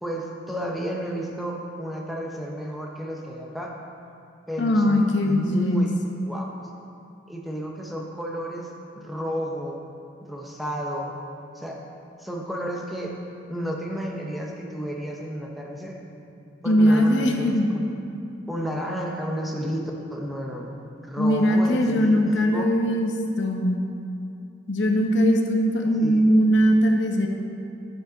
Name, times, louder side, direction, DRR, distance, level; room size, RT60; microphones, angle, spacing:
voice 1, 0.0-3.7 4.5-5.9 6.2-6.5 7.3-9.8 10.2-11.2 11.5-11.8 12.2-13.1 13.5-16.0 16.6-17.6 17.8-17.9 18.5-20.7 21.0-22.6 26.0-26.3, equal, ahead, -1 dB, 0.7 m, -32 dB
voice 2, 4.6-5.9 16.6-17.7 21.2-23.1 23.4-23.8 24.7-27.3, equal, 85° left, 3 dB, 0.8 m, -20 dB
9.7 x 6.7 x 3.9 m, 2.6 s
head